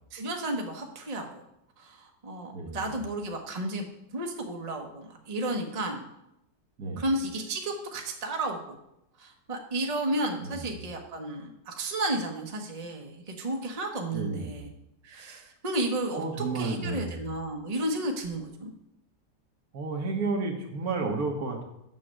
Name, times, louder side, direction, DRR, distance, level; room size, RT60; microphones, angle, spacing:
voice 1, 0.1-1.4 1.8-3.8 4.1-6.0 7.0-8.8 9.2-14.7 15.0-16.2 16.5-18.7, right 1 dB, 25° right, 2 dB, 1.0 m, -32 dB
voice 2, 2.5-2.9 6.8-7.0 10.4-10.7 14.1-14.5 16.1-17.2 19.7-21.6, right 3 dB, 60° right, 2 dB, 1.8 m, -31 dB
7.6 x 6.7 x 6.4 m, 0.84 s
omnidirectional pair, 1.8 m